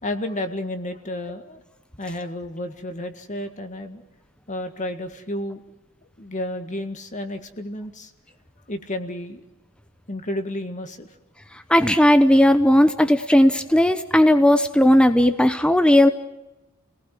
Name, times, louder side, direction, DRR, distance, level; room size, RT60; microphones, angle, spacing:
voice 1, 0.0-1.6 2.0-4.0 4.5-5.6 6.2-8.1 8.7-9.4 10.1-11.2, left 1 dB, 35° left, 7 dB, 1.8 m, -31 dB
voice 2, 11.7-16.1, left 1 dB, 5° left, 9 dB, 0.9 m, -16 dB
29.5 x 19.0 x 7.7 m, 1.0 s
head